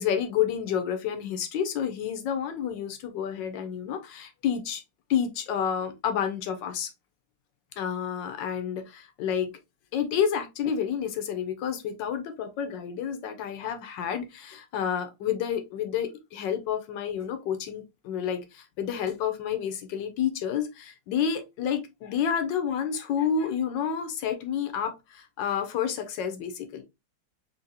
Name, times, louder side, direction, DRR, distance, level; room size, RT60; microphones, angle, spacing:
voice 1, 0.0-4.8 5.1-6.9 7.8-9.5 9.9-26.8, left 8 dB, 75° left, 1.4 m, -29 dB
3.9 x 2.9 x 2.7 m
omnidirectional pair, 2.1 m